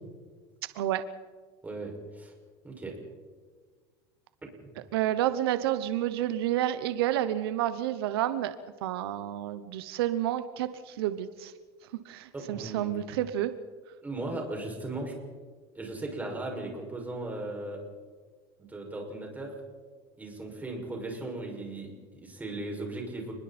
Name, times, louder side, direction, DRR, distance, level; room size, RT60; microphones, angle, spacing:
voice 1, 1.6-2.3 2.6-2.9 12.3-12.9 14.0-15.1 15.7-17.8 18.7-19.5 20.2-23.3, right 2 dB, 15° right, 0 dB, 6.1 m, -37 dB
voice 2, 4.9-8.6 8.8-11.5 12.0-13.5, right 12 dB, 85° right, 12 dB, 1.0 m, -29 dB
29.5 x 21.0 x 4.4 m, 1.5 s
supercardioid pair, 120°, 12 cm